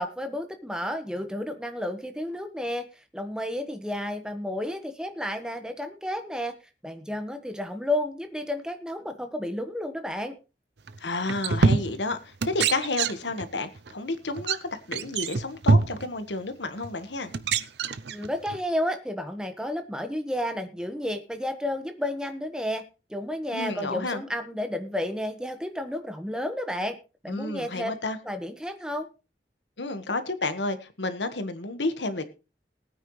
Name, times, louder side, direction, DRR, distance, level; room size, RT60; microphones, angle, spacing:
voice 1, 0.0-2.8 3.1-6.5 6.8-10.4 18.1-22.8 23.1-27.0 27.2-27.9 28.2-29.1, left 1 dB, 5° right, 7 dB, 1.3 m, -31 dB
sound 1, 10.9-11.0 11.3-12.1 12.4-13.5 13.8-13.9 14.4-14.6 14.9-16.1 16.8-16.9 17.3-18.6, right 4 dB, 70° right, 0.7 m, -25 dB
voice 2, 11.0-17.3 23.5-24.2 27.3-28.2 29.8-32.3, left 2 dB, 85° left, 10 dB, 1.5 m, -31 dB
19.5 x 9.2 x 3.2 m, 0.31 s
head